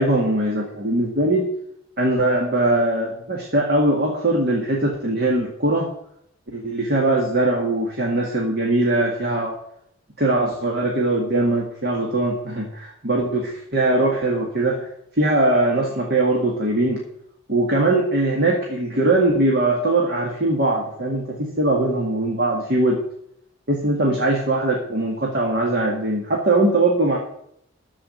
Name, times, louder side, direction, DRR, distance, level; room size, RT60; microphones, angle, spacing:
voice 1, 0.0-1.5 2.0-5.9 6.5-9.6 10.2-14.9 15.2-17.0 17.5-23.0 23.7-27.2, right 2 dB, 50° right, -1 dB, 2.1 m, -21 dB
14.0 x 5.1 x 9.3 m, 0.72 s
head